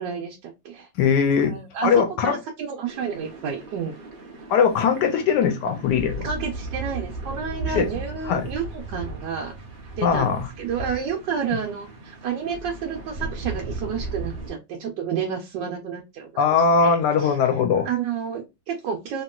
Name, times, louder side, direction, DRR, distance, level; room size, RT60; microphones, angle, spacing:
voice 1, 0.0-0.9 1.4-3.9 6.2-9.5 10.0-17.4 17.8-19.2, right 7 dB, 80° right, 1.3 m, -30 dB
voice 2, 1.0-2.4 4.5-6.3 7.7-7.9 8.3-8.5 10.0-10.5 16.4-17.9, left 6 dB, 75° left, 1.1 m, -20 dB
sound 1, 2.9-14.5, right 2 dB, 55° right, 0.5 m, -36 dB
2.9 x 2.9 x 2.2 m
omnidirectional pair, 2.0 m